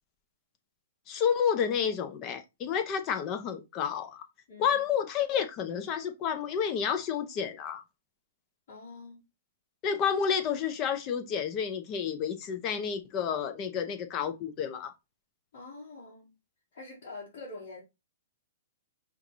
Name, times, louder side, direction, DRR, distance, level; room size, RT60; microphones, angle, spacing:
voice 1, 1.1-4.2 4.6-7.8 9.8-14.9, left 7 dB, 30° left, 0.8 m, -30 dB
voice 2, 8.7-9.2 15.5-16.3 16.7-17.8, left 3 dB, 55° left, 2.5 m, -45 dB
5.6 x 3.1 x 2.6 m
hypercardioid pair, 150°, 0 cm